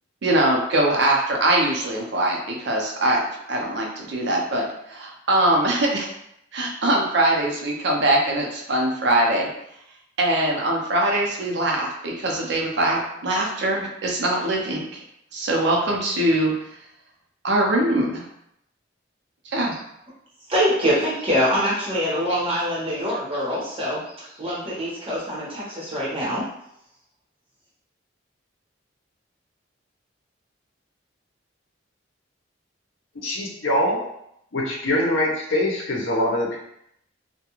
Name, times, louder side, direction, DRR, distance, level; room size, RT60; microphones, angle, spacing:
voice 1, 0.2-3.2 3.5-6.1 6.5-9.5 10.2-14.9 15.3-16.5 17.4-18.2 19.5-19.7, right 1 dB, 60° right, -1 dB, 0.5 m, -22 dB
voice 2, 20.5-26.4, equal, 30° right, -7 dB, 0.9 m, -24 dB
voice 3, 33.1-34.0 34.5-36.6, left 1 dB, 80° left, -2 dB, 0.7 m, -23 dB
2.4 x 2.2 x 2.9 m, 0.76 s
head